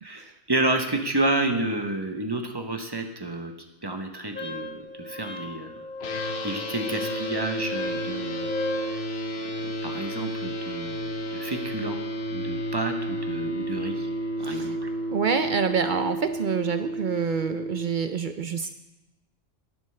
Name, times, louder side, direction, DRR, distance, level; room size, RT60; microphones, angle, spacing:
voice 1, 0.0-3.5 3.8-5.8 6.1-8.5 8.9-9.0 9.4-12.0 12.3-14.1 14.4-14.9, right 2 dB, 25° right, 4 dB, 0.8 m, -30 dB
Wind instrument woodwind instrument, 4.3-8.9, left 1 dB, 10° left, 0.8 m, -34 dB
sound 1, 6.0-17.9, equal, 60° left, 1.0 m, -32 dB
voice 2, 14.4-14.8 15.1-18.7, right 6 dB, 55° right, 8 dB, 0.5 m, -27 dB
11.0 x 10.5 x 3.3 m, 0.96 s
omnidirectional pair, 1.3 m